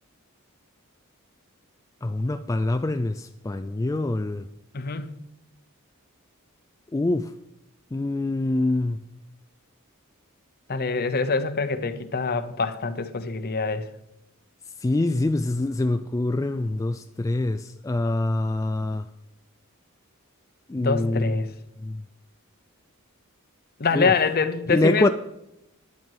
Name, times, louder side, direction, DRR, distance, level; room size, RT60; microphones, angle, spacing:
voice 1, 2.0-4.5 6.9-7.3 7.9-9.0 14.8-19.0 20.7-21.5 21.8-22.0 24.0-24.1 24.7-25.1, left 2 dB, 15° left, 0.3 m, -25 dB
voice 2, 4.7-5.2 10.7-13.9 20.8-21.5 23.8-25.1, left 4 dB, 45° left, 0.8 m, -25 dB
12.0 x 9.6 x 4.7 m
head